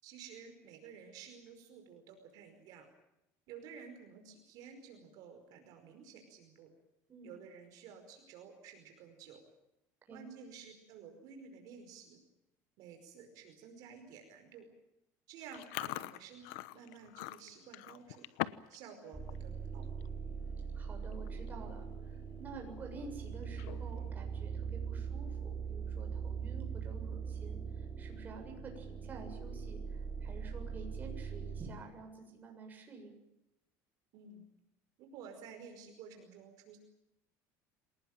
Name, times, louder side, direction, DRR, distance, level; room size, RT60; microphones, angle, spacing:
voice 1, 0.0-2.9 3.5-6.7 7.2-9.4 10.1-12.2 12.8-14.7 15.3-18.3 18.7-19.8 34.1-34.4 35.0-36.8, right 6 dB, 60° right, 5 dB, 5.2 m, -52 dB
Chewing mastication, 15.5-18.8 19.1-19.4 19.8-20.1 20.8-20.9 21.1-21.5 21.9-22.0 23.4-24.0, left 19 dB, 85° left, 1.0 m, -42 dB
sound 1, 19.1-31.7, right 6 dB, 5° right, 4.2 m, -41 dB
voice 2, 20.7-33.2, right 3 dB, 25° right, 2 dB, 7.4 m, -50 dB
26.5 x 19.5 x 9.0 m, 0.86 s
cardioid pair, 155°, 7 cm